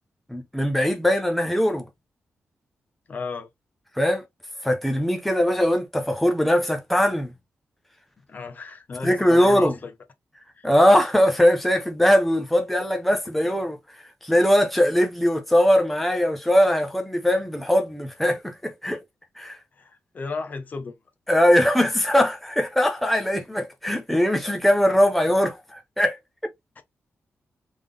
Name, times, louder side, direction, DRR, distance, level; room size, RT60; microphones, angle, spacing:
voice 1, 0.3-1.8 4.0-4.2 4.6-7.3 9.0-9.7 10.6-13.8 14.2-19.0 19.4-19.6 21.3-26.2, equal, 5° left, 0.7 m, -21 dB
voice 2, 3.1-3.5 8.3-9.9 10.6-10.7 19.8-20.9 26.8-26.9, left 4 dB, 40° left, 0.7 m, -34 dB
3.6 x 3.5 x 3.3 m
wide cardioid pair, 165°, 5 cm